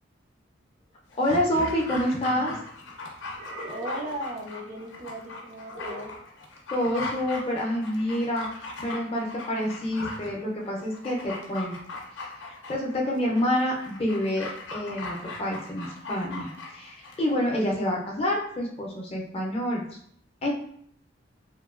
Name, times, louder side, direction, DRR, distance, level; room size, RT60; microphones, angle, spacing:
Dog, 1.1-17.4 17.7-17.8, left 2 dB, 80° left, 0.5 m, -39 dB
voice 1, 1.2-2.5 6.7-11.7 12.4-19.8 20.4-20.5, left 1 dB, 30° left, -2 dB, 0.5 m, -28 dB
sound 1, 2.1-2.6 3.3-4.2 5.7-6.2, right 1 dB, 80° right, 0.9 m, -42 dB
voice 2, 3.6-6.1, right 1 dB, 40° right, 0 dB, 0.4 m, -36 dB
2.8 x 2.2 x 2.3 m, 0.66 s
head